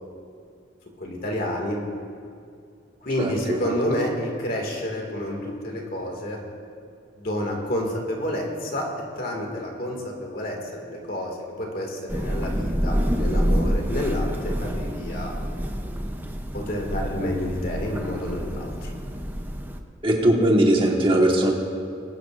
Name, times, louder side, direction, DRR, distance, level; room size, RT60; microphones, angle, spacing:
voice 1, 1.0-1.8 3.0-6.4 7.2-8.9 9.2-15.4 16.5-18.9, left 1 dB, 50° left, 0 dB, 2.1 m, -29 dB
voice 2, 3.2-3.7 20.0-21.5, right 1 dB, 30° right, 0 dB, 1.5 m, -20 dB
Thunder / Rain, 12.1-19.8, equal, 10° right, 0.6 m, -27 dB
20.5 x 12.0 x 2.5 m, 2.3 s
head